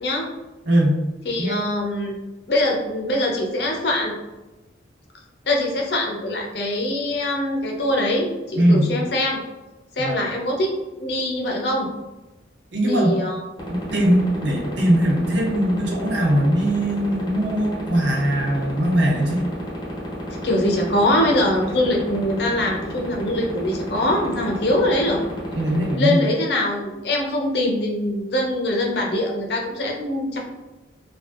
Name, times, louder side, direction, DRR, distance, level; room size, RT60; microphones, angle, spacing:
voice 1, 0.7-1.0 1.4-1.5 8.6-8.9 10.0-10.2 12.7-13.1 13.7-19.4 25.6-26.2, right 1 dB, 70° right, -1 dB, 0.6 m, -20 dB
voice 2, 1.2-2.1 2.5-4.1 5.4-9.4 10.0-11.9 12.8-13.4 20.4-25.2 26.0-30.4, left 1 dB, 60° left, 0 dB, 0.5 m, -23 dB
sound 1, 13.6-25.9, left 1 dB, 20° left, 0.7 m, -31 dB
2.6 x 2.3 x 2.3 m, 1.1 s
head